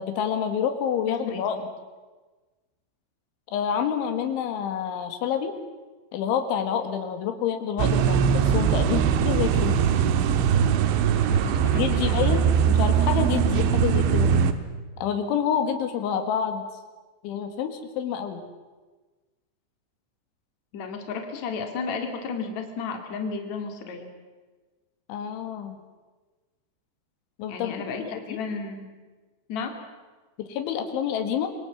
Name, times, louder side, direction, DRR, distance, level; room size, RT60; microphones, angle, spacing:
voice 1, 0.0-1.7 3.5-5.6 6.1-9.7 11.8-14.3 15.0-16.6 17.2-18.4 25.1-25.8 27.4-27.8 28.1-28.4 30.4-31.5, left 8 dB, 85° left, 7 dB, 4.3 m, -28 dB
voice 2, 1.1-1.6 11.3-12.4 20.7-24.1 27.5-28.9 29.5-29.7, left 5 dB, 45° left, 5 dB, 3.5 m, -33 dB
sound 1, 7.8-14.5, right 7 dB, 85° right, 3.6 m, -21 dB
27.0 x 23.5 x 7.3 m, 1.3 s
omnidirectional pair, 5.3 m